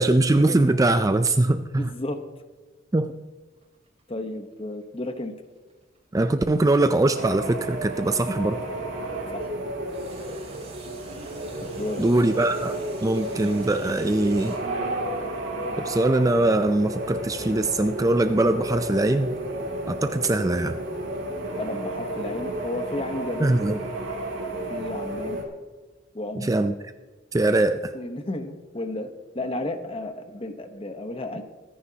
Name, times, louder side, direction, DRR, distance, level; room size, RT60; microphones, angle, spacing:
voice 1, 0.0-1.9 2.9-3.1 6.1-8.6 12.0-14.6 15.8-19.3 19.9-20.8 23.4-23.8 26.4-26.7 27.3-27.9, right 2 dB, 15° right, 9 dB, 0.4 m, -22 dB
voice 2, 1.8-2.2 4.1-5.3 9.3-9.5 11.6-12.0 21.6-23.5 24.5-25.4 26.1-26.6 27.9-29.1 29.3-31.4, left 1 dB, 30° left, 7 dB, 1.0 m, -33 dB
sound 1, 3.6-8.8 9.8-14.6, right 3 dB, 30° right, 3.3 m, -47 dB
sound 2, 7.1-25.4, right 1 dB, 70° right, 2.6 m, -32 dB
24.5 x 10.0 x 2.9 m, 1.3 s
head